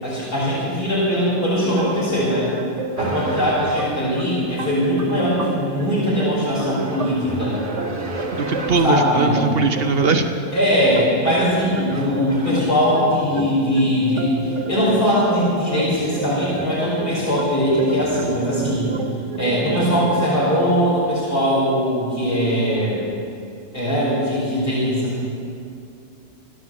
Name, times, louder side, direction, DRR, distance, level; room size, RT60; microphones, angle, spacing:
voice 1, 0.0-2.5 3.0-7.6 8.8-9.5 10.5-18.9 19.4-23.0 23.7-25.3, equal, 50° left, -8 dB, 5.4 m, -20 dB
sound 1, 1.6-20.3, right 4 dB, 85° right, 1.3 m, -32 dB
sound 2, 3.0-4.2 6.7-9.0 11.1-11.5 11.9-12.5, right 2 dB, 30° right, 1.6 m, -31 dB
voice 2, 8.3-10.3, right 3 dB, 60° right, 6 dB, 0.9 m, -20 dB
16.0 x 11.0 x 7.7 m, 2.5 s
omnidirectional pair, 1.2 m